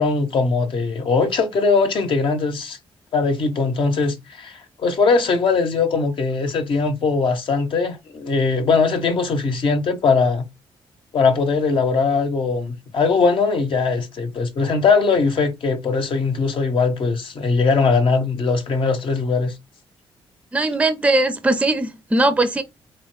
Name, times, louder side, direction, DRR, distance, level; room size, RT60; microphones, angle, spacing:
voice 1, 0.0-2.8 3.1-10.4 11.1-19.5, left 4 dB, 60° left, 0.9 m, -20 dB
voice 2, 20.5-22.6, right 2 dB, 10° right, 0.5 m, -19 dB
4.1 x 2.1 x 3.1 m
cardioid pair, 80°, 10 cm